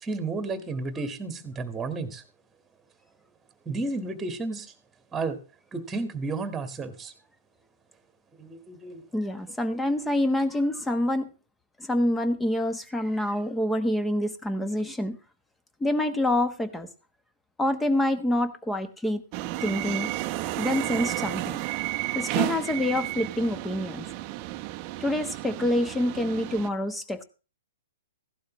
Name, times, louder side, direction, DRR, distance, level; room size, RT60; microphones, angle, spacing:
voice 1, 0.0-2.2 3.7-4.7 5.1-5.4 5.7-7.1 8.4-9.0, right 3 dB, 15° right, 9 dB, 1.9 m, -32 dB
voice 2, 9.1-11.3 11.8-15.2 15.8-16.9 17.6-19.2 19.6-20.1 20.6-21.6 22.1-24.1 25.0-27.2, left 1 dB, 10° left, 11 dB, 1.2 m, -26 dB
sound 1, 19.3-26.7, right 17 dB, 40° right, 0.8 m, -32 dB
15.5 x 12.0 x 3.2 m, 0.34 s
hypercardioid pair, 125°, 0 cm